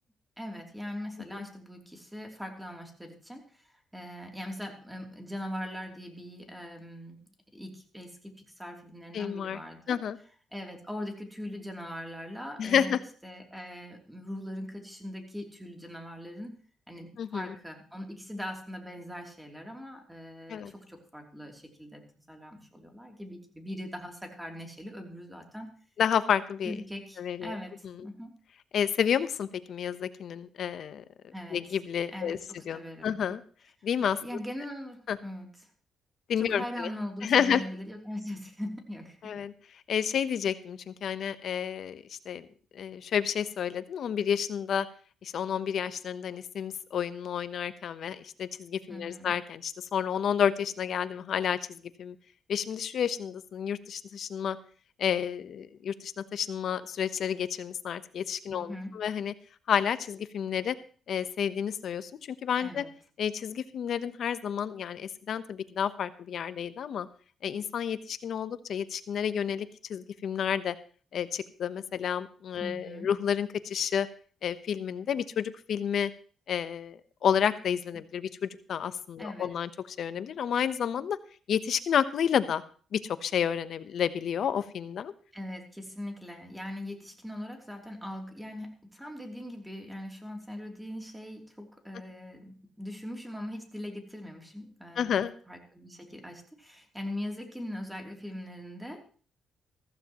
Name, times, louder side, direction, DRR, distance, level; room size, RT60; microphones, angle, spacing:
voice 1, 0.4-7.2 7.5-10.0 10.5-13.0 13.2-16.6 16.9-25.7 26.6-28.3 31.3-31.6 32.1-33.2 34.2-35.5 36.4-39.3 48.9-49.3 58.5-58.9 62.6-62.9 72.6-73.1 79.2-79.5 85.3-95.2 95.5-99.2, left 1 dB, 5° right, 2 dB, 3.0 m, -41 dB
voice 2, 9.1-9.6 9.9-10.2 12.6-13.0 17.2-17.5 20.5-20.7 26.0-26.7 27.2-27.6 28.7-31.0 31.5-32.4 32.7-33.4 33.8-34.2 35.1-35.2 36.3-36.9 37.2-37.6 39.2-39.5 39.9-42.5 42.7-44.9 45.2-52.1 52.5-54.6 55.0-59.3 59.7-60.7 61.1-62.1 62.4-62.8 63.2-67.1 67.4-70.7 71.1-74.1 74.4-76.1 76.5-81.2 81.5-82.6 82.9-85.1 95.0-95.3, left 8 dB, 65° left, 13 dB, 0.9 m, -30 dB
15.0 x 14.5 x 3.0 m, 0.42 s
cardioid pair, 90°, 0 cm